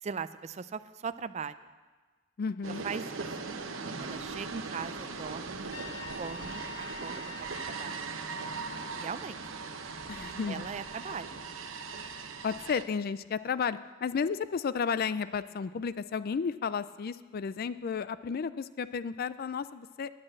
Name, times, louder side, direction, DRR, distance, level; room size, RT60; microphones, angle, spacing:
voice 1, 0.0-1.7 2.8-3.2 4.0-5.7 6.2-8.0 8.9-9.8 10.5-11.4, right 6 dB, 35° right, 13 dB, 0.4 m, -40 dB
voice 2, 2.4-2.9 10.1-10.6 12.4-20.1, left 6 dB, 50° left, 15 dB, 0.4 m, -33 dB
sound 1, 2.6-12.8, right 4 dB, 85° right, 0.9 m, -39 dB
Trumpet, 5.7-8.0, left 1 dB, 65° left, 1.3 m, -44 dB
10.5 x 8.7 x 7.7 m, 1.4 s
head